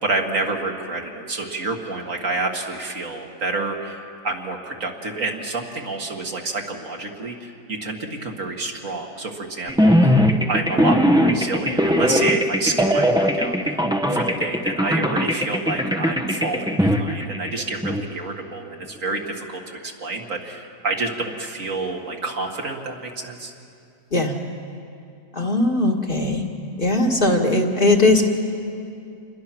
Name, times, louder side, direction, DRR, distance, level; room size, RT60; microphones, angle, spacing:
voice 1, 0.0-10.2 10.5-13.8 14.1-23.5, right 3 dB, 60° right, 1 dB, 2.3 m, -28 dB
sound 1, 9.7-18.0, equal, 5° right, 0.7 m, -20 dB
voice 2, 25.3-26.4 26.8-28.2, left 2 dB, 35° left, 1 dB, 1.8 m, -19 dB
27.5 x 22.0 x 6.0 m, 2.5 s
omnidirectional pair, 1.5 m